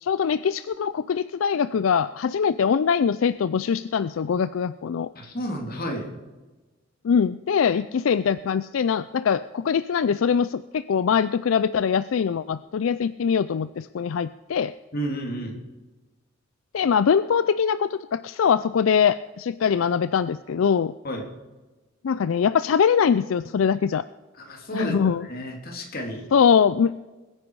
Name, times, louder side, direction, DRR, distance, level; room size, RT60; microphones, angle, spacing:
voice 1, 0.0-5.1 7.0-14.7 16.7-20.9 22.0-24.0 24.7-25.3 26.3-26.9, left 7 dB, 80° left, 15 dB, 0.4 m, -22 dB
voice 2, 5.1-6.1 14.9-15.6 21.0-21.3 24.3-26.2, equal, 50° left, 2 dB, 2.7 m, -31 dB
21.5 x 9.9 x 4.7 m, 1.2 s
head